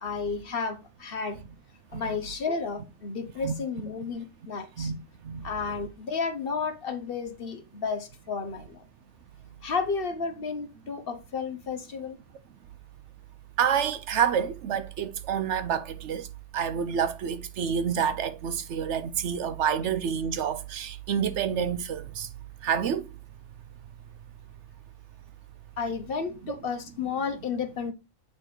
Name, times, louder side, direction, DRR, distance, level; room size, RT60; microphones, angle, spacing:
voice 1, 0.0-1.4 1.9-4.9 5.4-8.8 9.6-12.2 25.8-27.9, left 5 dB, 55° left, 1.1 m, -32 dB
voice 2, 13.6-16.3 16.5-22.3 22.6-23.1, right 8 dB, 75° right, 1.0 m, -28 dB
8.8 x 3.3 x 4.5 m
omnidirectional pair, 1.3 m